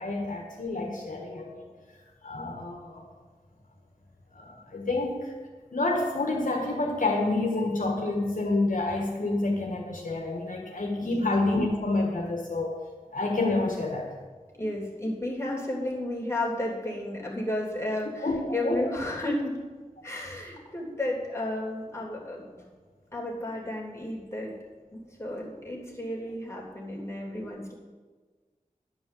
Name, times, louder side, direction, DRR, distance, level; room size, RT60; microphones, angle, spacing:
voice 1, 0.0-1.6 2.2-3.0 4.3-5.3 5.7-12.8 13.1-14.1 18.2-19.0, left 2 dB, 70° left, 0 dB, 1.4 m, -28 dB
voice 2, 14.5-19.6 20.0-22.7 23.1-24.6 24.9-27.7, left 1 dB, 20° left, -4 dB, 3.1 m, -33 dB
11.0 x 5.4 x 7.5 m, 1.4 s
wide cardioid pair, 55°, 14 cm